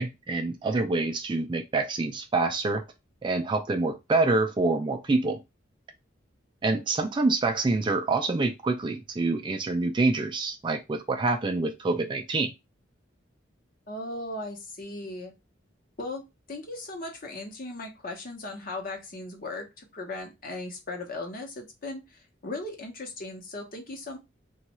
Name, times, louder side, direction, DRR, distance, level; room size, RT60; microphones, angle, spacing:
voice 1, 0.0-2.8 3.2-5.4 6.6-12.5, right 3 dB, 25° right, 0.3 m, -26 dB
voice 2, 13.9-15.3 16.0-16.2 16.5-24.2, left 2 dB, 45° left, 0.8 m, -37 dB
3.1 x 2.3 x 3.0 m
head